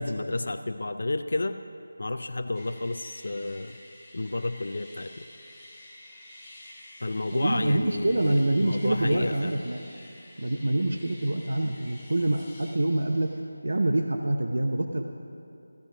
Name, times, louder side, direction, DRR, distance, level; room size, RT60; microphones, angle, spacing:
voice 1, 0.0-1.6 2.0-3.8 4.1-5.3 7.0-9.6, left 2 dB, 50° left, 7 dB, 0.4 m, -31 dB
sound 1, 2.5-13.4, left 1 dB, ahead, 1.1 m, -49 dB
voice 2, 7.3-9.8 10.4-13.3 13.6-15.0, right 1 dB, 60° right, 4 dB, 0.8 m, -26 dB
14.5 x 13.0 x 5.1 m, 2.6 s
figure-of-eight pair, 180°, 0 cm